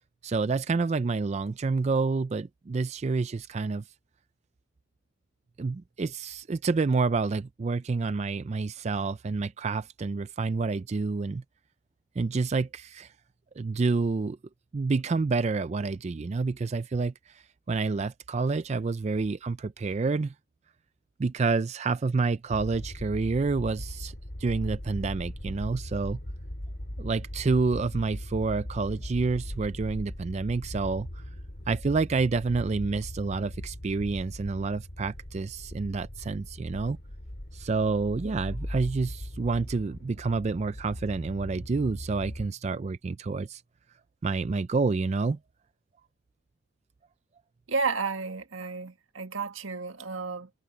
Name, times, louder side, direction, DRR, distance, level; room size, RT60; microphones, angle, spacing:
voice 1, 0.2-3.8 5.6-11.4 12.2-13.1 13.6-14.4 14.7-20.3 21.2-24.1 24.4-26.2 27.0-31.2 31.7-37.0 37.5-43.6 44.2-45.4, right 4 dB, 35° right, 0.3 m, -28 dB
sound 1, 22.5-42.5, left 1 dB, 50° left, 2.3 m, -39 dB
voice 2, 47.7-50.5, right 4 dB, 85° right, 1.7 m, -32 dB
head